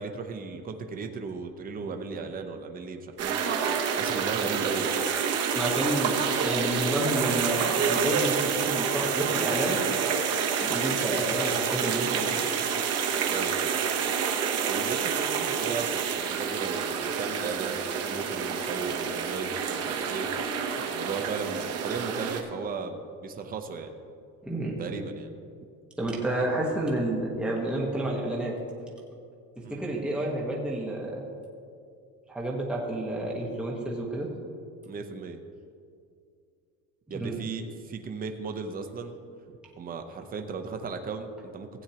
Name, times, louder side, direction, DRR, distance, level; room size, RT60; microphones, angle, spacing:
voice 1, 0.0-3.4 4.0-5.0 13.3-13.7 14.7-20.4 20.9-24.0 24.8-25.4 29.6-29.8 34.8-35.4 37.1-39.2 39.5-41.7, right 4 dB, 25° right, 5 dB, 0.7 m, -36 dB
sound 1, 3.2-22.4, right 6 dB, 45° right, 1.0 m, -28 dB
voice 2, 5.5-9.8 10.6-12.4 24.4-24.8 26.0-28.5 29.7-31.2 32.3-34.3 37.1-37.4, right 1 dB, 5° right, -3 dB, 1.3 m, -30 dB
16.0 x 8.6 x 2.9 m, 2.4 s
cardioid pair, 145°, 33 cm